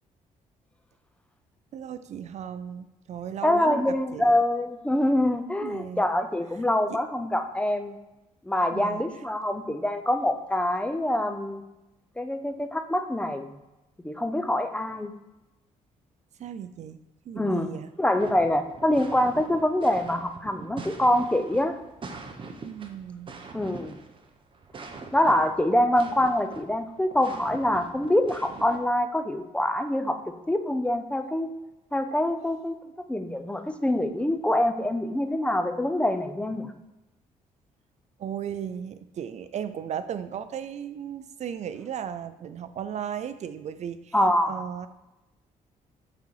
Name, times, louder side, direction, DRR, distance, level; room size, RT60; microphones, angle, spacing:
voice 1, 1.7-4.4 5.6-6.0 6.9-7.0 8.7-9.0 16.4-17.9 22.6-23.3 32.8-32.9 38.2-44.2 44.5-44.9, right 8 dB, 55° right, 12 dB, 0.4 m, -36 dB
voice 2, 3.4-8.0 8.4-11.6 12.2-13.5 14.0-15.1 17.4-17.7 18.0-21.7 23.5-24.0 25.1-30.2 30.5-31.5 31.9-36.7 44.1-44.6, left 1 dB, 10° left, 8 dB, 0.6 m, -25 dB
sound 1, 18.2-28.8, right 4 dB, 35° right, 0.9 m, -43 dB
8.4 x 3.9 x 4.7 m, 1.0 s
cardioid pair, 105°, 14 cm